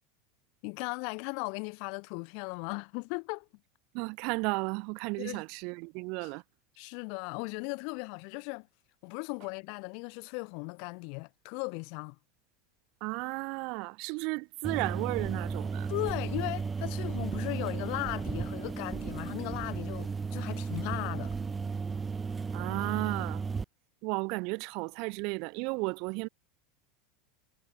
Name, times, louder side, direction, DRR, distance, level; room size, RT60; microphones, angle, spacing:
voice 1, 0.6-3.5 5.2-5.4 6.2-6.3 6.8-8.7 9.0-12.2 15.9-21.3, left 40 dB or more, 60° left, 3.0 m, -37 dB
voice 2, 3.9-6.4 13.0-15.9 22.5-23.4 24.0-26.3, right 30 dB, 60° right, 1.1 m, -34 dB
sound 1, 14.6-23.6, right 5 dB, 20° right, 0.7 m, -34 dB
supercardioid pair, 110°, 0 cm